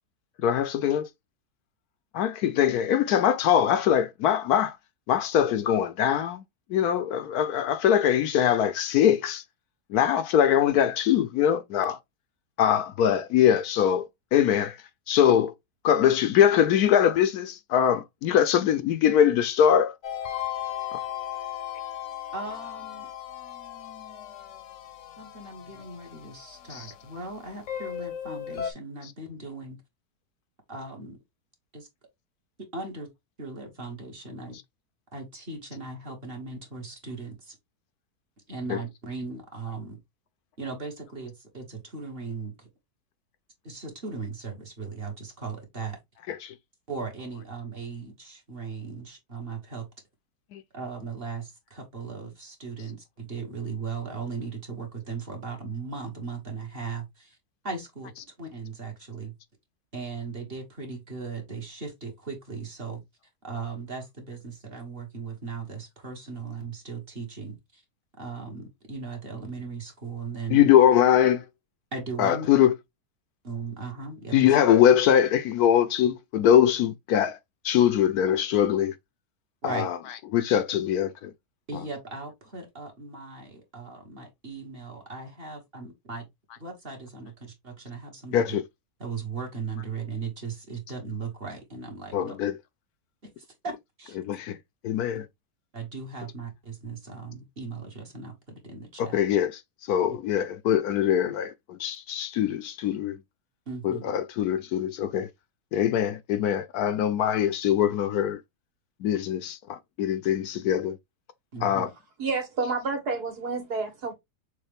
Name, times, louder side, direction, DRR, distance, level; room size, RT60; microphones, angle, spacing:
voice 1, 0.4-1.1 2.1-4.8 5.1-6.4 6.7-9.4 9.9-12.0 12.6-14.8 15.1-15.5 15.8-19.9 20.9-21.0 26.7-26.9 29.0-29.1 38.7-38.8 46.3-46.5 50.5-50.6 58.2-58.3 70.5-71.4 72.2-72.7 74.3-77.4 77.6-78.9 79.6-81.3 81.7-81.9 88.3-88.6 92.1-92.6 94.1-94.6 94.8-95.3 99.0-99.6 99.9-103.2 103.8-105.3 105.7-108.4 109.0-111.0 111.6-111.9, left 9 dB, 75° left, 1.1 m, -22 dB
sound 1, 20.0-28.7, left 10 dB, 55° left, 1.0 m, -37 dB
voice 2, 22.3-23.1 25.2-29.8 30.7-31.2 31.7-31.9 32.7-33.1 33.4-34.6 35.1-37.6 38.5-40.0 40.6-42.7 43.6-46.0 46.9-49.9 50.7-57.4 57.6-59.3 59.9-63.0 63.4-67.8 68.2-70.6 71.9-72.5 73.4-74.6 79.6-79.9 81.7-86.2 86.6-88.5 89.0-92.4 93.2-94.2 95.7-99.2 100.1-100.2 103.7-104.1 111.5-111.9, right 4 dB, 35° right, 1.5 m, -37 dB
voice 3, 112.2-114.1, right 4 dB, 70° right, 2.2 m, -29 dB
6.4 x 2.5 x 3.3 m
omnidirectional pair, 1.8 m